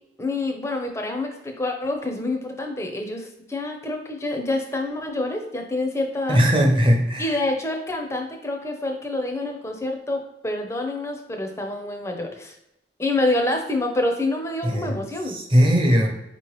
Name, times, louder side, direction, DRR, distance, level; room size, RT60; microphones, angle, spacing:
voice 1, 0.2-6.4 7.2-12.6 13.0-15.4, left 2 dB, 15° left, 3 dB, 0.5 m, -27 dB
voice 2, 6.3-7.3 14.6-14.9 15.3-16.1, equal, 30° right, 1 dB, 0.7 m, -19 dB
4.2 x 3.0 x 3.0 m, 0.87 s
head